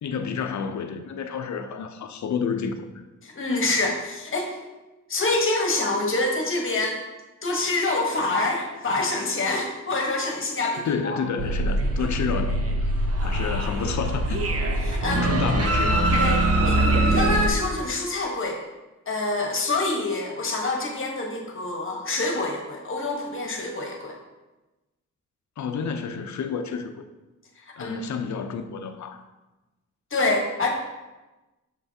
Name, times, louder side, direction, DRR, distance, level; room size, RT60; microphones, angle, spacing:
voice 1, 0.0-2.9 10.8-12.9 13.2-14.4 15.1-16.2 25.6-27.0 27.8-29.2, left 6 dB, 60° left, 8 dB, 0.6 m, -30 dB
voice 2, 3.2-4.5 5.1-7.0 7.4-11.2 14.8-15.5 16.2-16.4 16.6-18.6 19.1-24.2 27.6-28.0 30.1-30.7, left 2 dB, 40° left, 1 dB, 1.2 m, -26 dB
sound 1, 11.4-17.5, right 1 dB, 50° right, 0.8 m, -23 dB
6.5 x 5.6 x 2.8 m, 1.1 s
cardioid pair, 100°, 32 cm